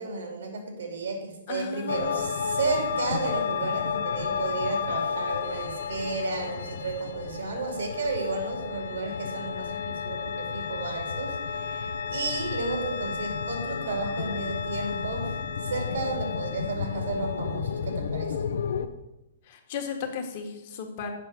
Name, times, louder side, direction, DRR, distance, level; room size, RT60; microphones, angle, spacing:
voice 1, 0.0-15.3 15.6-18.5, right 3 dB, 80° right, 2 dB, 2.6 m, -33 dB
voice 2, 1.5-2.2 19.5-21.1, left 6 dB, 45° left, 4 dB, 1.5 m, -35 dB
sound 1, 1.9-18.9, left 6 dB, 75° left, 0.6 m, -32 dB
7.6 x 5.4 x 6.1 m, 0.94 s
hypercardioid pair, 140°, 0 cm